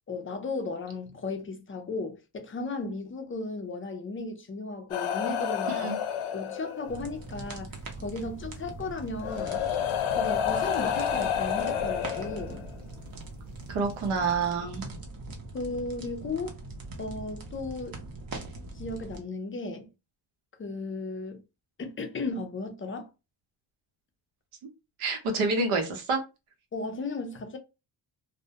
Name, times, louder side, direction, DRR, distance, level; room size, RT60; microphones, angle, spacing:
voice 1, 0.1-5.9 6.3-7.8 8.0-9.6 10.2-12.6 15.5-16.6 17.0-18.0 18.7-19.9 20.6-21.4 21.8-23.1 26.7-27.6, left 3 dB, 30° left, 0.4 m, -35 dB
sound 1, 4.9-7.1 8.4-8.5 9.2-12.8 13.9-14.1, left 8 dB, 80° left, 0.6 m, -30 dB
voice 2, 5.7-6.0 13.7-14.8 25.0-26.2, right 4 dB, 85° right, 0.9 m, -28 dB
sound 2, 6.9-19.2, right 2 dB, 45° right, 0.7 m, -42 dB
2.1 x 2.1 x 2.7 m
cardioid pair, 110°, 49 cm